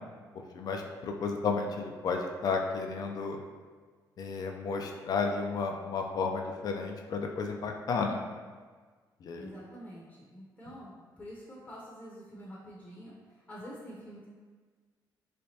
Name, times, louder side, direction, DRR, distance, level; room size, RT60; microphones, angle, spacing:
voice 1, 0.5-3.4 4.2-8.2 9.2-9.5, left 4 dB, 55° left, 3 dB, 0.4 m, -32 dB
voice 2, 9.3-14.3, equal, 20° left, -6 dB, 0.7 m, -47 dB
3.4 x 3.2 x 2.8 m, 1.5 s
cardioid pair, 95°, 8 cm